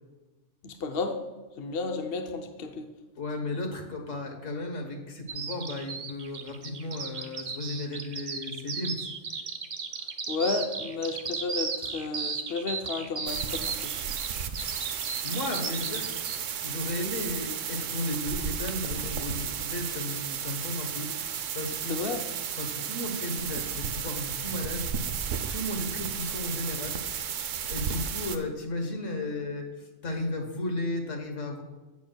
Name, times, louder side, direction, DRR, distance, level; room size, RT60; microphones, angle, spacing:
voice 1, 0.6-1.2 1.6-2.9 10.3-13.9 21.9-22.2, left 4 dB, 60° left, 4 dB, 0.8 m, -32 dB
voice 2, 3.2-9.1 15.2-16.1 16.6-21.1 21.5-22.1 22.6-24.9 25.5-27.0 27.7-31.6, left 2 dB, 75° left, 3 dB, 1.6 m, -34 dB
Bird vocalization bird call bird song, 5.3-16.4, right 5 dB, 50° right, 0.6 m, -35 dB
sound 1, 13.3-28.4, right 7 dB, 80° right, 1.0 m, -33 dB
16.0 x 6.3 x 2.3 m, 1.2 s
omnidirectional pair, 1.3 m